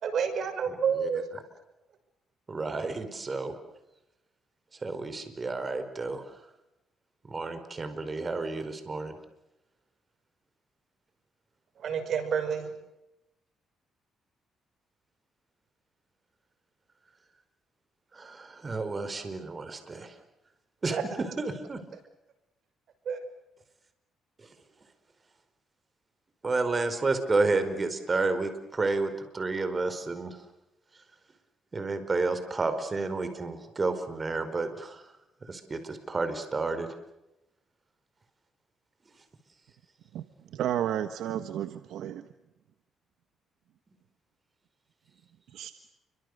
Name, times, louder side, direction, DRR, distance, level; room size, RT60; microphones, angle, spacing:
voice 1, 0.0-1.3 11.8-12.7 20.9-21.0 23.1-23.2, right 7 dB, 65° right, 9 dB, 6.0 m, -29 dB
voice 2, 0.7-1.4 2.5-3.5 4.7-6.5 7.2-9.2 18.1-20.2 20.8-21.8 24.4-24.5 26.4-30.4 30.9-31.0 31.7-35.1 35.4-37.0, right 3 dB, 30° right, 9 dB, 5.0 m, -31 dB
voice 3, 40.5-42.3 45.5-45.7, right 11 dB, 80° right, 9 dB, 1.4 m, -32 dB
30.0 x 25.0 x 6.8 m, 0.91 s
cardioid pair, 90°, 0 cm